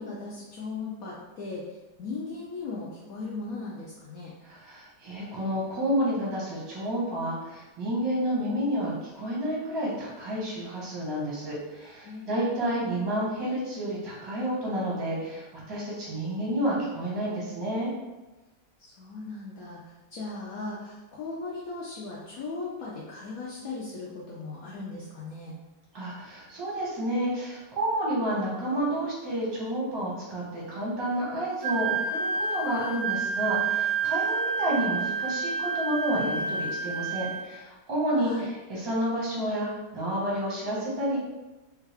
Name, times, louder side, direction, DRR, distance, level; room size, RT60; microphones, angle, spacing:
voice 1, 0.0-4.3 11.8-12.9 18.8-25.6 38.1-38.5, left 3 dB, 75° left, -5 dB, 0.8 m, -38 dB
voice 2, 4.4-17.9 25.9-41.2, right 1 dB, 20° right, -6 dB, 0.6 m, -30 dB
Wind instrument woodwind instrument, 31.6-37.4, right 5 dB, 80° right, 1.3 m, -29 dB
3.5 x 2.3 x 3.3 m, 1.1 s
omnidirectional pair, 2.1 m